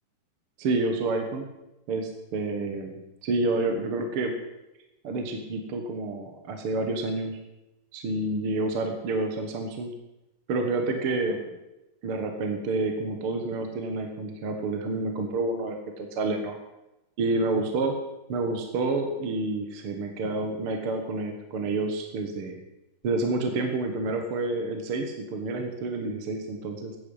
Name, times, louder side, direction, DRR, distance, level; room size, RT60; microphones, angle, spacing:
voice 1, 0.6-1.5 1.9-4.3 5.0-7.4 7.9-9.9 10.5-11.4 12.0-16.6 17.2-18.0 18.3-22.6 23.0-27.0, right 2 dB, 55° right, 4 dB, 1.9 m, -29 dB
14.5 x 10.5 x 5.6 m, 0.94 s
omnidirectional pair, 3.6 m